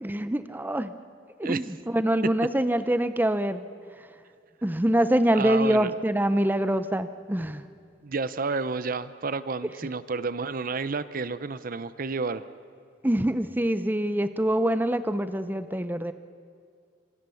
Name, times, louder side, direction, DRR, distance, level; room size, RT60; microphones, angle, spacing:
voice 1, 0.0-0.9 1.4-3.6 4.6-7.6 13.0-16.1, right 1 dB, 10° right, 11 dB, 0.7 m, -25 dB
voice 2, 5.3-5.9 8.0-12.4, right 4 dB, 50° right, 15 dB, 0.7 m, -30 dB
26.0 x 25.0 x 7.1 m, 2.3 s
head